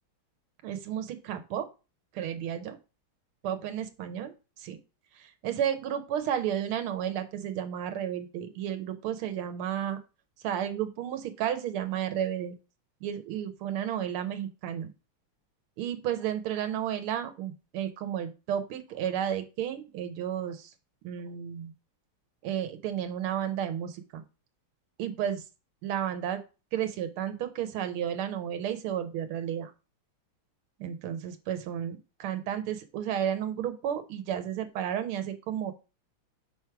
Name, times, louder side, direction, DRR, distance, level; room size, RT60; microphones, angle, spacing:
voice 1, 0.6-1.7 2.1-2.8 3.4-4.8 5.1-10.0 10.4-12.6 13.0-14.9 15.8-20.7 21.0-21.7 22.4-24.2 25.0-25.4 25.8-26.4 26.7-29.7 30.8-35.7, right 10 dB, 90° right, 8 dB, 1.7 m, -32 dB
5.3 x 4.6 x 5.8 m, 0.31 s
omnidirectional pair, 2.3 m